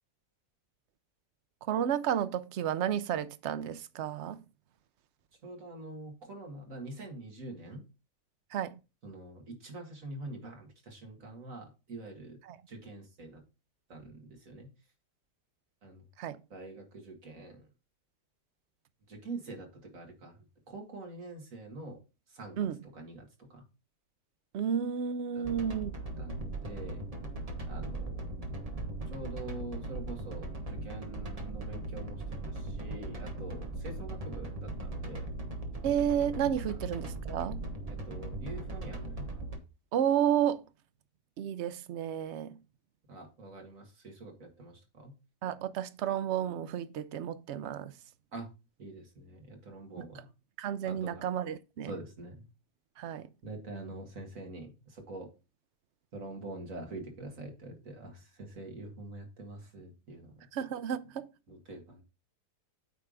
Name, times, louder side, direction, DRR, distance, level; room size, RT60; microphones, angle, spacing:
voice 1, 1.6-4.5 8.5-8.8 12.4-12.6 16.2-16.4 22.6-22.8 24.5-25.9 35.8-37.7 39.9-40.7 41.4-42.6 45.4-48.0 50.0-50.1 50.6-51.9 53.0-53.3 60.5-61.3, right 9 dB, 70° right, 0.6 m, -32 dB
voice 2, 5.4-7.8 9.0-12.4 12.7-13.4 13.9-14.7 15.8-16.0 16.5-17.7 19.1-22.0 22.3-22.6 22.9-23.6 25.3-25.5 26.2-27.0 27.7-28.5 29.1-35.3 37.9-39.3 43.1-45.1 48.3-48.5 48.8-50.3 50.8-51.2 51.9-52.4 53.4-55.3 56.1-60.5 61.5-62.0, right 2 dB, 50° right, 2.2 m, -45 dB
sound 1, 25.4-39.6, right 2 dB, 25° right, 1.2 m, -39 dB
9.0 x 3.4 x 5.1 m
omnidirectional pair, 1.8 m